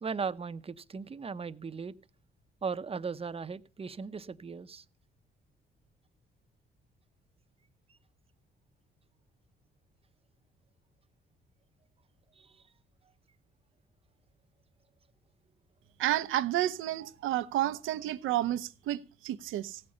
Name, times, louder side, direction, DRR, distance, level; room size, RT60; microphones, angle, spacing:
voice 1, 0.0-1.9 2.6-4.8 12.4-12.6, right 5 dB, 30° right, 0.8 m, -37 dB
voice 2, 16.0-19.8, right 13 dB, 90° right, 0.8 m, -31 dB
15.5 x 5.6 x 9.8 m
cardioid pair, 90°, 20 cm